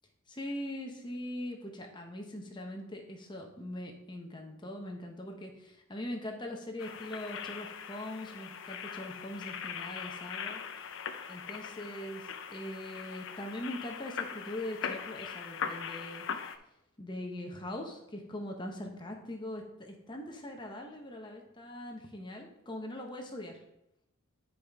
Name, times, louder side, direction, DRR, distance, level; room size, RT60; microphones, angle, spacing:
voice 1, 0.3-10.6 11.3-16.2 17.0-23.6, left 1 dB, 20° left, 1 dB, 0.9 m, -41 dB
sound 1, 6.8-16.6, left 7 dB, 60° left, 0.5 m, -41 dB
9.3 x 5.0 x 3.5 m, 0.84 s
head